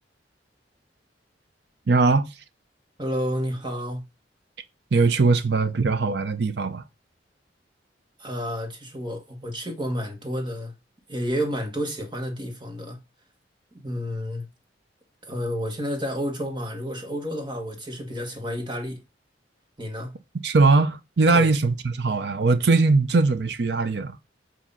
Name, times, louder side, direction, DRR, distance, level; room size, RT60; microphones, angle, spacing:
voice 1, 1.9-2.3 4.9-6.8 20.4-24.1, right 3 dB, 65° right, 0.6 m, -20 dB
voice 2, 3.0-4.0 8.2-10.7 11.1-13.0 13.7-14.4 15.2-19.0 19.8-20.1 21.3-21.5, equal, 25° right, 1.4 m, -30 dB
7.4 x 2.8 x 5.5 m
head